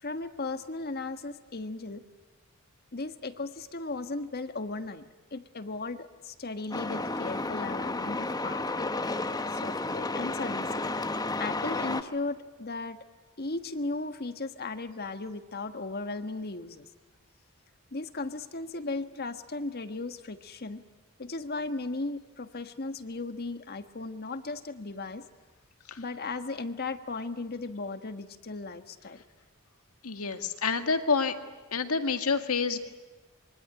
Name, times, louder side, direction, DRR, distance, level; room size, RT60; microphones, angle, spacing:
voice 1, 0.0-2.0 2.9-5.1 5.3-8.9 9.5-10.8 11.4-13.0 13.4-16.9 17.9-20.8 21.2-25.2 26.0-29.2, left 3 dB, 45° left, 9 dB, 1.4 m, -36 dB
Truck, 6.7-12.0, left 2 dB, 15° left, 0.9 m, -32 dB
voice 2, 30.0-31.3 31.7-32.8, left 4 dB, 80° left, 7 dB, 2.0 m, -28 dB
25.5 x 23.5 x 9.9 m, 1.3 s
head